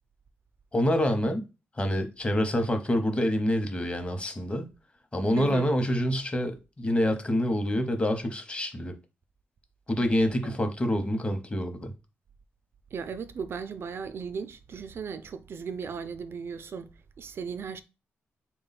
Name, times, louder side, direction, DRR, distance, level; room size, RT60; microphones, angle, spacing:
voice 1, 0.7-1.5 1.8-4.7 5.1-9.0 9.9-11.9, equal, 25° left, 0.8 m, -27 dB
voice 2, 5.4-5.7 10.4-10.6 12.9-17.8, right 6 dB, 60° right, 0.3 m, -36 dB
3.6 x 2.2 x 4.0 m
cardioid pair, 75°, 5 cm